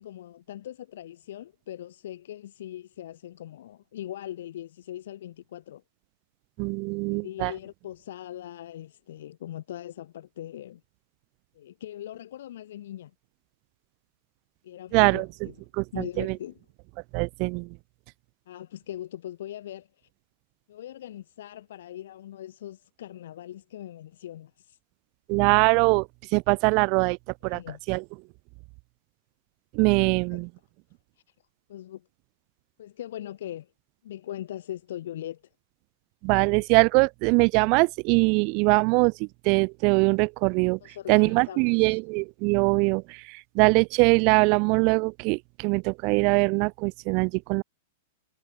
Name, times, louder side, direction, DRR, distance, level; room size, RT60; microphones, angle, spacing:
voice 1, 0.0-5.8 7.1-10.8 11.5-13.1 14.6-15.7 15.9-16.6 18.5-19.9 20.7-24.8 27.5-27.8 30.0-30.4 31.7-32.1 32.8-33.7 34.0-35.4 40.8-42.0, left 12 dB, 65° left, 1.4 m, -40 dB
voice 2, 6.6-7.5 14.9-15.3 15.7-16.4 17.1-17.7 25.3-27.2 27.4-27.6 27.9-28.0 29.7-30.5 36.2-40.8 41.1-47.6, right 33 dB, 35° right, 0.7 m, -22 dB
supercardioid pair, 165°, 0 cm